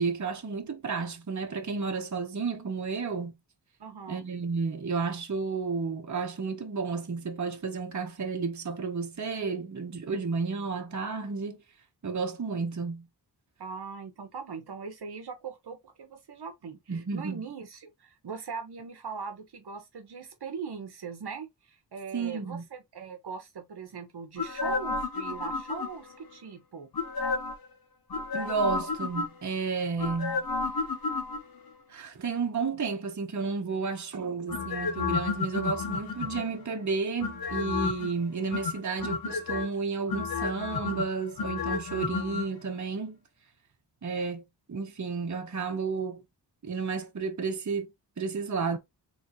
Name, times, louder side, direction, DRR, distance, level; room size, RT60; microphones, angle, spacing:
voice 1, 0.0-3.3 4.1-11.6 12.0-13.1 16.9-17.4 22.1-22.7 28.3-30.4 31.9-43.2 44.0-44.4 44.7-46.2 46.6-47.9 48.2-48.8, right 4 dB, 45° right, 1.1 m, -32 dB
voice 2, 3.8-4.3 13.6-26.9, right 5 dB, 70° right, 1.1 m, -40 dB
sound 1, 24.4-26.2 26.9-27.7 28.1-29.5 30.0-31.7 34.5-36.6 37.2-38.1 38.5-39.7 40.1-42.5 42.7-42.8, left 4 dB, 60° left, 1.1 m, -31 dB
4.1 x 3.3 x 3.0 m
wide cardioid pair, 90°, 40 cm